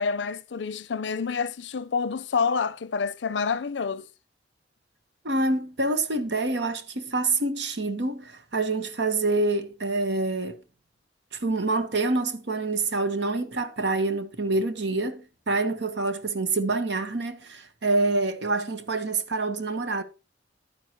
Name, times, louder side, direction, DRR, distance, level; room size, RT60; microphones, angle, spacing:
voice 1, 0.0-4.1, left 5 dB, 75° left, 0.5 m, -28 dB
voice 2, 5.2-10.6 11.3-20.0, right 2 dB, 70° right, 1.3 m, -26 dB
11.5 x 9.6 x 3.0 m
head